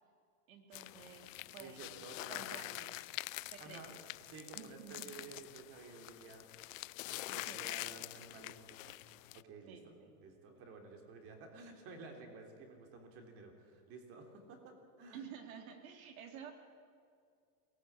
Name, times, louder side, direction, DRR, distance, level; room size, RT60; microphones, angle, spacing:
voice 1, 0.5-3.2 3.5-4.0 4.5-5.3 7.3-7.8 9.7-10.1 15.1-16.5, right 7 dB, 65° right, 5 dB, 3.3 m, -52 dB
sound 1, 0.7-9.4, left 18 dB, 60° left, 0.5 m, -46 dB
voice 2, 1.4-2.6 3.6-3.9 4.3-6.5 7.1-9.0 9.3-15.2, right 4 dB, 30° right, 4 dB, 3.3 m, -53 dB
23.0 x 18.0 x 8.6 m, 2.3 s
supercardioid pair, 170°, 45 cm